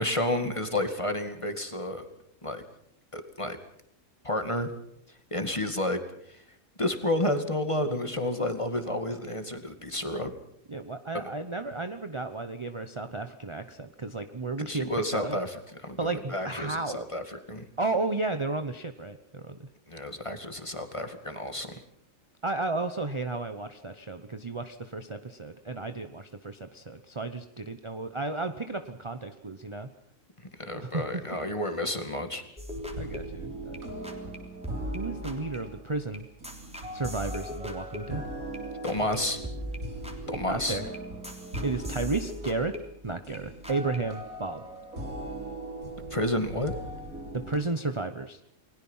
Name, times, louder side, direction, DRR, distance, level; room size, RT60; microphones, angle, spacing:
voice 1, 0.0-2.0 2.4-2.6 3.1-3.6 4.2-4.7 5.3-6.0 6.3-6.4 6.8-10.3 11.1-11.3 14.7-17.7 19.9-21.8 30.6-32.4 38.8-39.4 40.3-40.8 46.1-46.7, left 1 dB, 20° left, 7 dB, 2.3 m, -30 dB
voice 2, 10.7-14.9 15.1-15.4 16.0-17.0 17.8-19.6 22.4-29.9 30.7-31.2 33.0-33.8 34.9-36.2 36.9-38.2 40.3-40.9 41.6-42.7 43.0-44.6 47.3-48.4, right 3 dB, 25° right, 8 dB, 0.9 m, -33 dB
sound 1, 32.6-34.4 34.6-39.2 39.4-43.4 43.6-44.0, left 1 dB, 5° right, 3.5 m, -40 dB
sound 2, 32.7-47.6, right 1 dB, 85° right, 4.1 m, -39 dB
30.0 x 21.0 x 5.7 m, 0.71 s
omnidirectional pair, 1.4 m